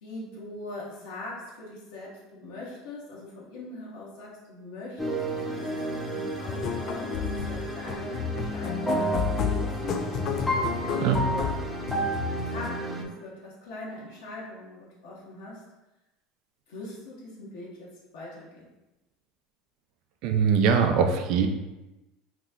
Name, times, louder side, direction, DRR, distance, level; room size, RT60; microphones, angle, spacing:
voice 1, 0.0-5.7 6.1-10.1 10.8-11.6 12.4-15.6 16.7-18.7, left 2 dB, 85° left, -6 dB, 0.8 m, -41 dB
sound 1, 5.0-13.0, right 2 dB, ahead, 0.6 m, -32 dB
sound 2, 6.5-12.8, left 7 dB, 55° left, 0.3 m, -32 dB
voice 2, 20.2-21.5, right 6 dB, 65° right, 5 dB, 0.4 m, -22 dB
2.9 x 2.2 x 3.6 m, 1.0 s
supercardioid pair, 100°, 0 cm